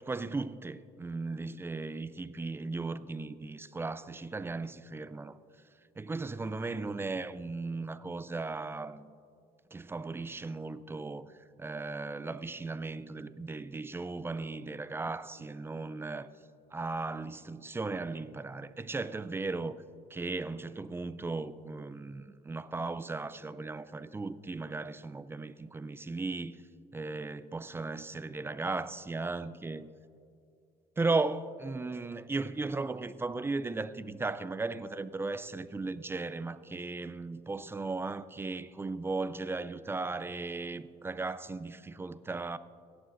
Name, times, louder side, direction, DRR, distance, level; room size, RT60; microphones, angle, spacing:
voice 1, 0.0-5.4 6.0-9.1 9.7-16.3 16.7-19.8 20.1-26.6 26.9-29.9 31.0-42.6, right 3 dB, 15° right, 0.3 m, -36 dB
17.0 x 11.5 x 2.5 m
cardioid pair, 110°, 17 cm